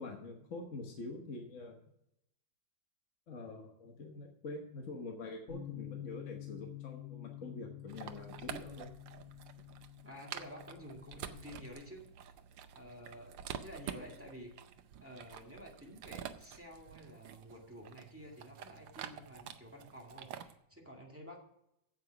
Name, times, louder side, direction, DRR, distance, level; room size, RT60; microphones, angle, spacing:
voice 1, 0.0-1.8 3.3-8.9, left 3 dB, 45° left, 2 dB, 1.4 m, -45 dB
Bass guitar, 5.5-11.7, left 13 dB, 65° left, 2.8 m, -49 dB
sound 1, 7.9-20.6, right 9 dB, 80° right, 1.4 m, -48 dB
voice 2, 10.0-12.3 12.7-14.5 15.0-21.4, equal, 5° right, -1 dB, 2.0 m, -51 dB
8.7 x 7.9 x 5.9 m, 0.80 s
omnidirectional pair, 2.0 m